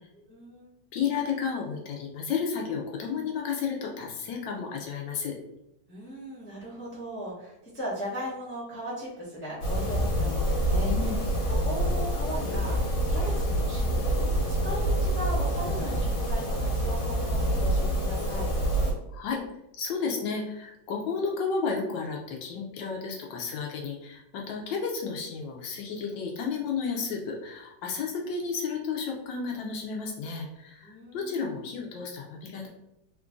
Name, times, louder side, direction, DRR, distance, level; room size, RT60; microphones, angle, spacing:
voice 1, 0.1-0.7 5.9-11.2 11.5-18.5 30.8-31.4, right 1 dB, 10° left, -8 dB, 0.7 m, -38 dB
voice 2, 0.9-5.4 10.8-11.2 19.1-19.4 19.7-32.7, left 5 dB, 75° left, 1 dB, 1.2 m, -32 dB
sound 1, 9.6-18.9, equal, 45° left, 1.4 m, -26 dB
3.7 x 2.4 x 3.6 m, 0.87 s
omnidirectional pair, 2.2 m